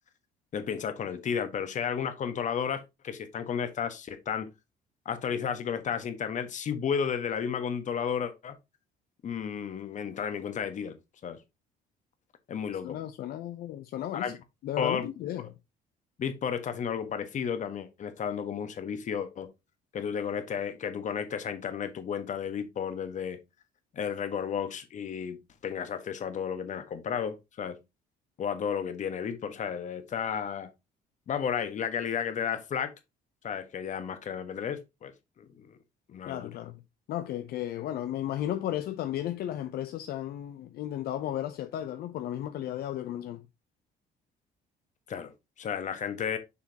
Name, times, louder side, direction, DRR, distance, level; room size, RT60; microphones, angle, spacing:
voice 1, 0.5-4.5 5.0-8.6 9.2-11.0 11.2-11.4 12.5-13.0 14.1-14.3 14.8-15.1 16.2-19.5 19.9-23.4 23.9-27.8 28.4-30.7 31.3-32.9 33.4-35.1 35.4-35.8 36.1-36.5 45.1-45.3 45.6-46.4, left 7 dB, 45° left, 1.3 m, -33 dB
voice 2, 12.8-14.3 14.6-15.5 36.3-36.8 37.1-43.5, left 12 dB, 65° left, 0.6 m, -34 dB
6.8 x 5.1 x 2.8 m
cardioid pair, 110°, 17 cm